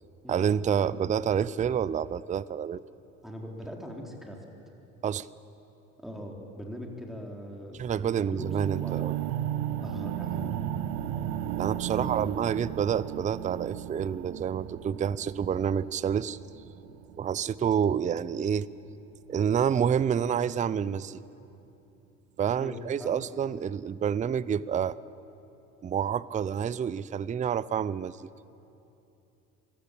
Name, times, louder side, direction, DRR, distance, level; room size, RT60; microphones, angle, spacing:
voice 1, 0.3-2.8 5.0-5.3 7.8-9.2 11.6-16.4 17.2-18.7 19.3-21.2 22.4-25.0 25.8-28.3, right 8 dB, 20° right, 19 dB, 0.5 m, -28 dB
voice 2, 3.2-4.4 6.0-7.8 8.3-9.1 9.8-10.5 11.8-12.3 22.6-23.2, equal, ahead, 0 dB, 4.1 m, -41 dB
sound 1, 8.4-18.3, right 11 dB, 65° right, 1.0 m, -35 dB
24.0 x 15.0 x 8.7 m, 2.9 s
hypercardioid pair, 65°, 42 cm